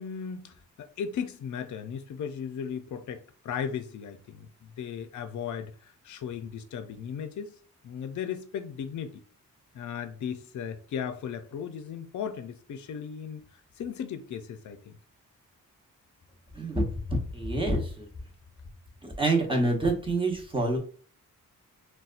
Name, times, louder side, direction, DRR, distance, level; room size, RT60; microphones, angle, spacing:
voice 1, 0.0-7.6 7.8-9.2 9.7-15.0, left 7 dB, 60° left, 0.5 m, -36 dB
voice 2, 16.5-18.1 19.0-20.8, right 2 dB, 15° right, 0.8 m, -27 dB
4.0 x 2.2 x 2.4 m
wide cardioid pair, 105°, 33 cm